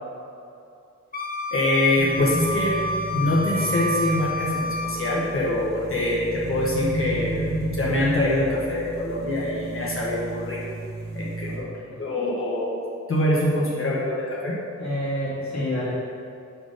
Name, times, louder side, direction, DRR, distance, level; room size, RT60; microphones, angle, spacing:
Wind instrument woodwind instrument, 1.1-5.2, left 1 dB, 30° left, 0.7 m, -29 dB
voice 1, 1.5-2.8 3.1-7.4 7.7-10.6 11.1-11.7 12.0-12.7 13.1-14.6, left 1 dB, 50° left, -6 dB, 1.2 m, -24 dB
sound 1, 2.0-11.6, right 2 dB, 70° right, 1.4 m, -33 dB
voice 2, 11.5-12.0 14.8-15.9, left 1 dB, 70° left, -7 dB, 1.6 m, -29 dB
6.9 x 4.3 x 5.1 m, 2.5 s
wide cardioid pair, 110°, 29 cm